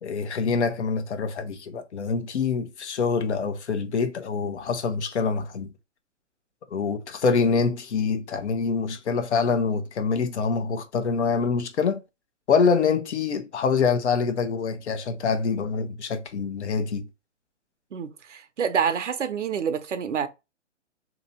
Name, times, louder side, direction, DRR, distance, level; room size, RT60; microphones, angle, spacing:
voice 1, 0.0-5.7 6.7-12.0 12.5-17.0, left 5 dB, 65° left, 0.9 m, -25 dB
voice 2, 17.9-20.3, right 7 dB, 75° right, 0.7 m, -27 dB
3.0 x 2.8 x 4.1 m
figure-of-eight pair, 130°, 37 cm